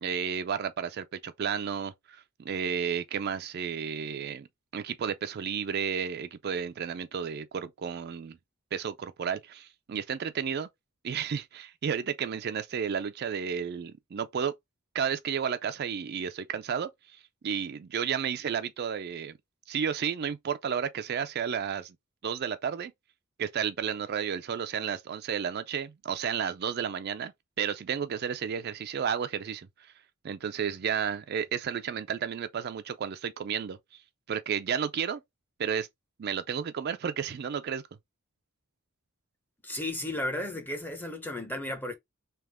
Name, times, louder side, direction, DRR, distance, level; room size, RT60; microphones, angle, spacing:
voice 1, 0.0-4.5 4.7-8.4 8.7-10.7 11.0-14.5 14.9-16.9 17.4-19.3 19.7-22.0 22.2-22.9 23.4-27.3 27.6-29.9 30.2-34.0 34.3-35.2 35.6-35.9 36.2-37.8, right 7 dB, 50° right, 0.4 m, -32 dB
voice 2, 39.6-41.9, left 1 dB, 10° left, 0.7 m, -34 dB
3.4 x 2.9 x 3.5 m
head